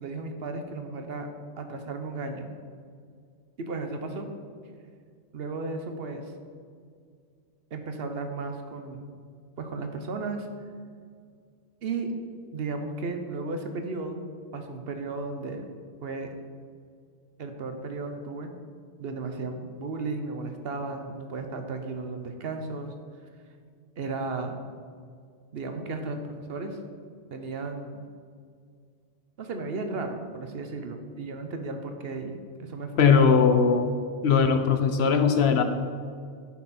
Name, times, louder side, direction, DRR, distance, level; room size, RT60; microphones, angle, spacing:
voice 1, 0.0-1.3 1.6-2.5 3.6-4.3 5.3-6.3 7.7-9.0 9.6-10.5 11.8-12.1 12.5-14.2 14.5-15.6 16.0-16.3 17.4-18.5 19.0-22.9 24.0-24.6 25.5-26.8 27.3-28.0 29.4-33.3, right 3 dB, 65° right, 5 dB, 1.0 m, -34 dB
voice 2, 33.0-33.9 34.2-35.6, left 6 dB, 75° left, 8 dB, 0.9 m, -20 dB
10.5 x 5.7 x 4.2 m, 2.2 s
omnidirectional pair, 1.1 m